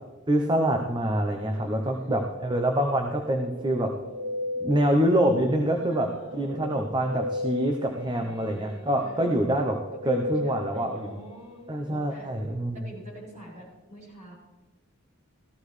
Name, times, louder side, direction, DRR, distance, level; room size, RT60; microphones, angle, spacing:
voice 1, 0.3-4.0 4.6-11.2 11.7-12.8, right 1 dB, 20° right, 3 dB, 0.8 m, -26 dB
voice 2, 1.3-2.4 5.7-7.0 8.2-9.3 10.0-11.6 11.9-12.3 12.7-14.4, equal, 40° right, -5 dB, 5.5 m, -46 dB
Guitar, 3.0-5.5 6.3-11.7, left 1 dB, 55° right, 1.3 m, -36 dB
16.0 x 14.0 x 3.3 m, 1.2 s
head